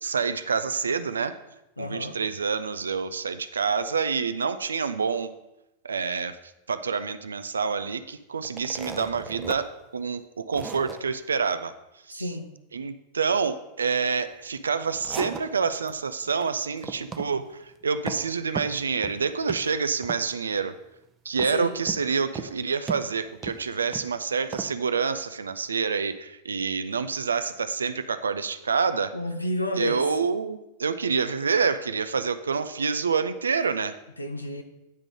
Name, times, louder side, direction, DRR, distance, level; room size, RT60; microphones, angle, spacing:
voice 1, 0.0-1.4 1.8-5.3 5.8-6.4 6.7-11.7 12.1-12.3 12.7-17.5 17.8-20.8 21.3-29.2 29.8-34.0, right 5 dB, 70° right, 13 dB, 0.4 m, -27 dB
voice 2, 1.8-2.2 12.1-12.5 21.5-21.8 29.1-30.0 34.2-34.6, left 1 dB, 80° left, 6 dB, 0.7 m, -31 dB
sound 1, 8.4-9.6 10.0-10.1 10.5-11.0 14.6-15.9 16.2-16.5 16.8-17.3 17.6-18.3 18.5-19.2 19.5-19.7 20.0-20.5 21.4-22.1 22.3-22.5 22.9-24.1 24.5-24.7, right 5 dB, 20° right, 0.7 m, -36 dB
9.7 x 3.7 x 6.2 m, 0.92 s
figure-of-eight pair, 90°, 0 cm